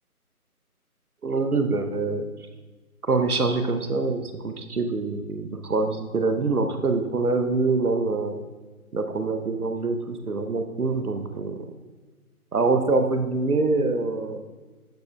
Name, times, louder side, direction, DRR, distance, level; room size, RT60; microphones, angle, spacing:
voice 1, 1.2-2.2 3.1-8.4 8.9-11.6 12.5-14.4, right 3 dB, 75° right, 7 dB, 0.9 m, -25 dB
11.5 x 5.5 x 2.3 m, 1.3 s
figure-of-eight pair, 155°, 45 cm